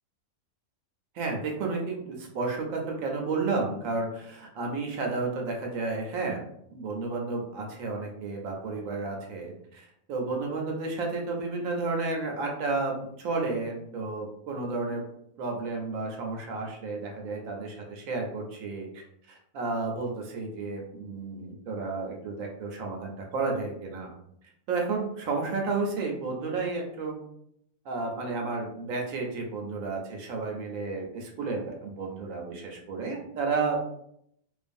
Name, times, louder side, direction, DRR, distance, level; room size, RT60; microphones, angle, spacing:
voice 1, 1.1-6.4 6.7-15.0 15.4-19.0 19.3-24.1 24.7-27.2 27.9-33.8, right 3 dB, 70° right, 1 dB, 0.9 m, -32 dB
2.5 x 2.4 x 2.5 m, 0.73 s
omnidirectional pair, 1.6 m